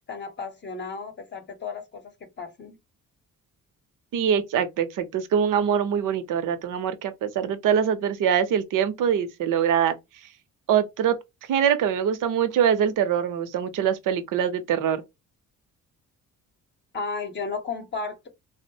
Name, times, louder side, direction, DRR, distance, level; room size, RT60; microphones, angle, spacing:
voice 1, 0.1-2.8 16.9-18.3, left 4 dB, 35° left, 0.7 m, -34 dB
voice 2, 4.1-10.3 10.7-15.0, right 8 dB, 75° right, 0.7 m, -24 dB
3.7 x 2.1 x 2.7 m
cardioid pair, 130°, 32 cm